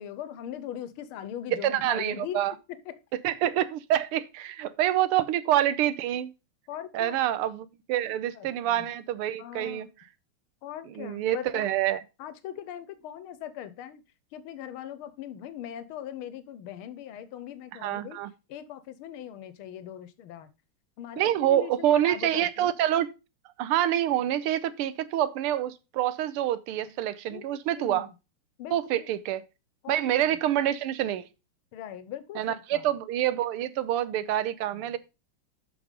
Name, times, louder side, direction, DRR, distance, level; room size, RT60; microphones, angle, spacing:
voice 1, 0.0-2.5 2.8-3.0 6.7-7.2 8.3-8.9 9.4-9.9 10.6-11.7 12.2-14.0 14.3-18.2 18.5-20.5 21.0-22.8 27.3-28.1 28.6-29.1 29.8-30.4 31.7-32.9 34.7-35.0, left 10 dB, 80° left, 1.7 m, -40 dB
voice 2, 1.5-2.5 3.2-6.3 6.9-9.9 11.0-12.0 17.8-18.3 21.2-23.1 23.6-28.1 28.7-29.4 29.9-31.3 32.4-35.0, right 12 dB, 85° right, 1.6 m, -27 dB
7.4 x 5.8 x 5.0 m
omnidirectional pair, 2.4 m